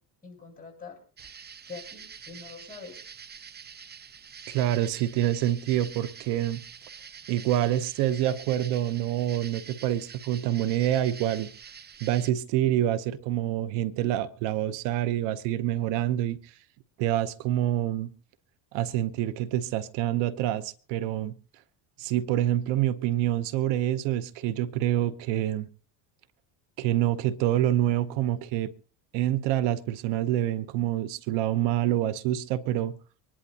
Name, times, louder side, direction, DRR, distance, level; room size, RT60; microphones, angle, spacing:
voice 1, 0.2-1.0 1.7-3.0, left 4 dB, 20° left, 7.7 m, -44 dB
sound 1, 1.2-12.3, right 7 dB, 25° right, 0.7 m, -46 dB
voice 2, 4.5-6.6 7.3-11.5 12.0-16.5 17.0-18.1 18.7-21.3 22.0-25.7 26.8-28.7 29.1-32.9, right 12 dB, 80° right, 0.9 m, -27 dB
25.0 x 11.0 x 2.8 m
supercardioid pair, 105°, 43 cm